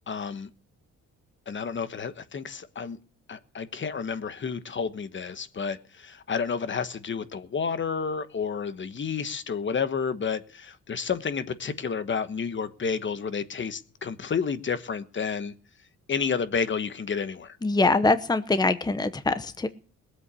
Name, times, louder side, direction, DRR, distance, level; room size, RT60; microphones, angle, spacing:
voice 1, 0.1-0.5 1.5-3.0 3.3-15.5 16.1-17.6, left 6 dB, 40° left, 1.2 m, -30 dB
voice 2, 17.6-19.7, left 3 dB, 15° left, 0.9 m, -23 dB
19.5 x 8.1 x 8.3 m
cardioid pair, 90°, 30 cm